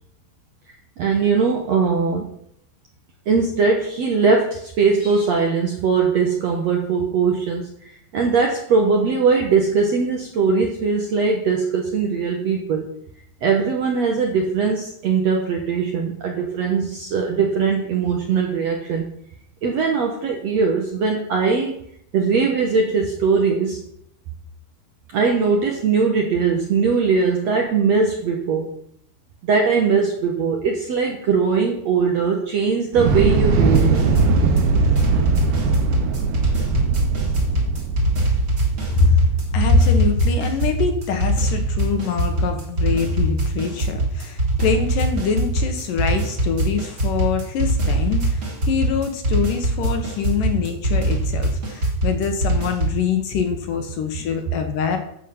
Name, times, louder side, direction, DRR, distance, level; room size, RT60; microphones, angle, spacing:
voice 1, 1.0-2.3 3.3-7.7 8.1-12.9 13.4-19.1 19.6-21.8 22.1-23.8 25.1-28.7 29.4-34.1, right 5 dB, 65° right, 2 dB, 1.7 m, -20 dB
Thunder / Explosion, 32.9-41.1, right 4 dB, 85° right, 3.0 m, -21 dB
sound 1, 33.7-53.0, right 2 dB, 30° right, 2.3 m, -22 dB
voice 2, 38.9-39.2 39.5-55.0, left 5 dB, 70° left, 6 dB, 2.6 m, -23 dB
12.5 x 7.5 x 5.8 m, 0.73 s
omnidirectional pair, 4.5 m